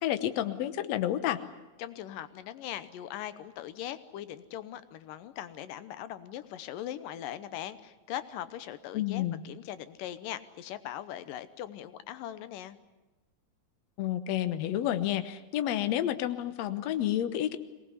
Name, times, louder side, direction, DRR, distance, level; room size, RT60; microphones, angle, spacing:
voice 1, 0.0-1.4 8.9-9.4 14.0-17.6, left 12 dB, 65° left, 11 dB, 2.0 m, -30 dB
voice 2, 1.8-12.8, left 11 dB, 90° left, 13 dB, 2.6 m, -40 dB
23.0 x 19.0 x 9.7 m, 1.1 s
omnidirectional pair, 3.8 m